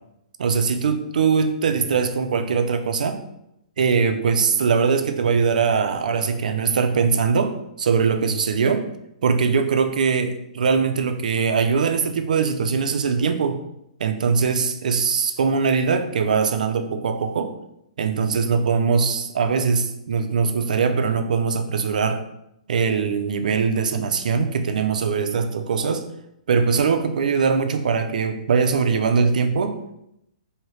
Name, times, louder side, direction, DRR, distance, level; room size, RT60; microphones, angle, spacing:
voice 1, 0.4-3.2 3.8-8.9 9.2-13.6 14.0-17.6 18.0-22.2 22.7-26.1 26.5-29.8, right 5 dB, 75° right, 7 dB, 0.5 m, -21 dB
4.5 x 2.7 x 3.1 m, 0.80 s
hypercardioid pair, 165°, 4 cm